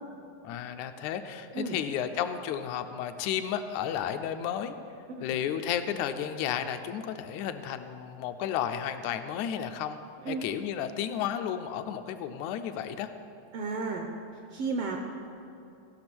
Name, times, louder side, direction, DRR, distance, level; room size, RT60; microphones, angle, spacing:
voice 1, 0.4-4.8 5.2-10.0 10.3-13.1, left 9 dB, 85° left, 8 dB, 1.9 m, -32 dB
voice 2, 13.5-14.1 14.5-15.0, right 4 dB, 75° right, 3 dB, 1.4 m, -32 dB
15.0 x 6.0 x 6.1 m, 2.7 s
omnidirectional pair, 3.3 m